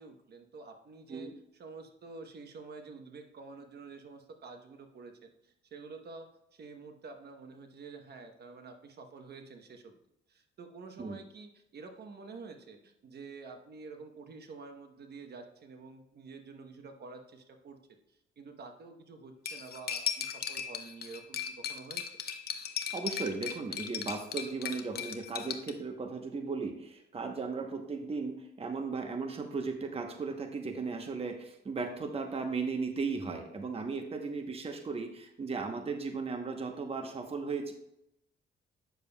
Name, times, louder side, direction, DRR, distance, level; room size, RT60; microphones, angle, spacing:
voice 1, 0.0-10.0 10.3-17.8 18.1-22.1, right 4 dB, 55° right, 6 dB, 1.0 m, -49 dB
Cutlery silverware, 19.4-25.7, left 8 dB, 50° left, 0.8 m, -37 dB
voice 2, 22.9-37.7, right 4 dB, 30° right, 5 dB, 0.9 m, -36 dB
9.0 x 6.8 x 2.2 m, 0.81 s
cardioid pair, 90°, 20 cm